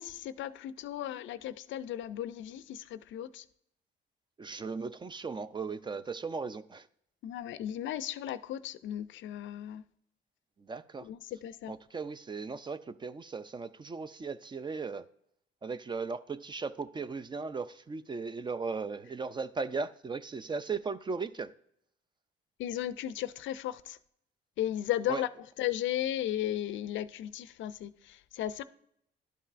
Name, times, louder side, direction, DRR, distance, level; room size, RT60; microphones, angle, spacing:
voice 1, 0.0-3.5 7.2-9.8 11.0-11.7 22.6-24.0 24.6-25.3 25.6-28.6, left 12 dB, 70° left, 0.4 m, -35 dB
voice 2, 4.4-6.8 10.6-11.1 11.7-15.0 15.6-21.5 25.1-25.2, right 4 dB, 25° right, 0.3 m, -37 dB
11.5 x 5.4 x 2.5 m
cardioid pair, 90°, 20 cm